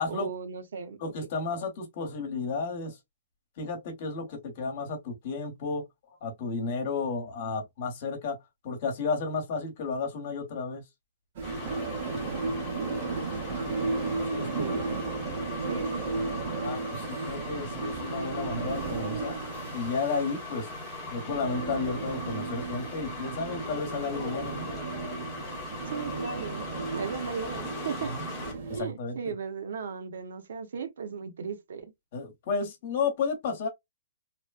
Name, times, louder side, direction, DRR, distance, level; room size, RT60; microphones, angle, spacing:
voice 1, 0.0-1.0 14.4-14.8 15.7-16.2 25.9-26.7 26.9-28.1 28.7-31.9, right 6 dB, 75° right, 0.9 m, -36 dB
voice 2, 1.0-3.0 3.6-5.8 6.2-8.4 8.6-10.8 14.3-14.8 16.6-19.4 19.7-20.7 21.1-24.7 28.1-28.2 28.7-29.2 32.1-33.7, left 4 dB, 40° left, 1.1 m, -32 dB
sound 1, 11.4-28.5, left 2 dB, 15° left, 1.1 m, -40 dB
sound 2, 11.4-28.8, right 4 dB, 40° right, 0.9 m, -35 dB
3.0 x 2.2 x 2.4 m
hypercardioid pair, 170°, 0 cm